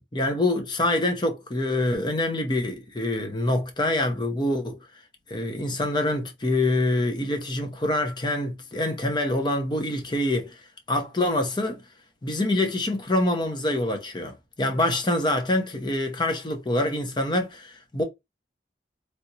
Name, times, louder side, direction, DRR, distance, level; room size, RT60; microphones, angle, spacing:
voice 1, 0.0-4.8 5.3-10.6 10.9-11.8 12.2-18.0, left 1 dB, 25° left, 0.7 m, -25 dB
3.4 x 2.9 x 2.7 m
head